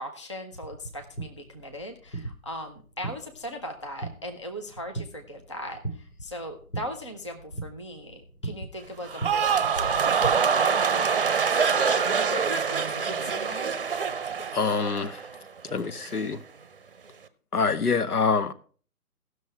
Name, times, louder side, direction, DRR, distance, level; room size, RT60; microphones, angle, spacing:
voice 1, 0.0-13.7, equal, 20° left, 0.5 m, -39 dB
sound 1, 0.5-10.3, right 2 dB, 90° left, 2.8 m, -39 dB
sound 2, 9.0-15.4 15.7-16.2, right 6 dB, 35° right, 0.7 m, -25 dB
voice 2, 14.5-15.2 15.6-16.4 17.5-18.5, left 5 dB, 75° left, 1.1 m, -25 dB
15.5 x 6.4 x 4.3 m
figure-of-eight pair, 140°, 46 cm